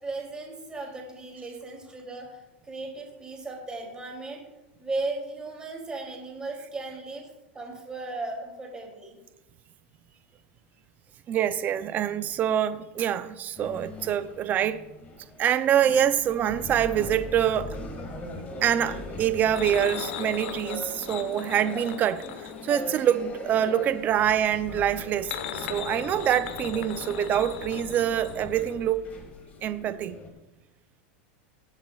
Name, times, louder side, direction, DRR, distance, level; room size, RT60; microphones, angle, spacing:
voice 1, 0.0-4.4 4.8-7.3 7.5-9.2, right 3 dB, 15° right, 3.0 m, -36 dB
voice 2, 11.3-14.8 15.4-17.8 18.6-22.2 22.6-29.1 29.6-30.2, right 10 dB, 30° right, 0.6 m, -25 dB
sound 1, 13.5-30.3, left 2 dB, 25° left, 1.9 m, -40 dB
sound 2, 19.5-23.7 24.9-29.2 29.5-29.6 29.9-30.0, left 9 dB, 70° left, 1.1 m, -39 dB
21.0 x 8.1 x 2.4 m
supercardioid pair, 140°, 6 cm